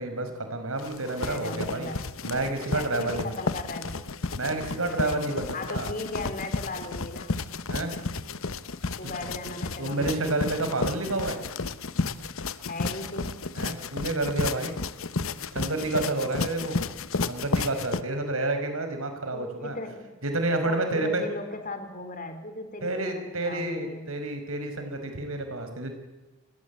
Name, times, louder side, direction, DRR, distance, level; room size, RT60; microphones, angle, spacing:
voice 1, 0.0-1.9 2.2-3.3 4.4-5.9 7.7-7.9 9.0-9.1 9.8-11.4 13.5-14.8 15.5-16.9 17.3-19.8 20.2-21.2 22.8-25.9, right 2 dB, 65° right, 6 dB, 5.4 m, -29 dB
sound 1, 0.8-18.0, left 3 dB, 65° left, 1.1 m, -32 dB
voice 2, 1.2-2.0 2.7-4.1 5.0-7.3 9.0-10.3 12.6-13.4 19.3-20.1 20.6-24.1, left 2 dB, 40° left, 7 dB, 4.0 m, -37 dB
29.0 x 21.0 x 8.5 m, 1.1 s
head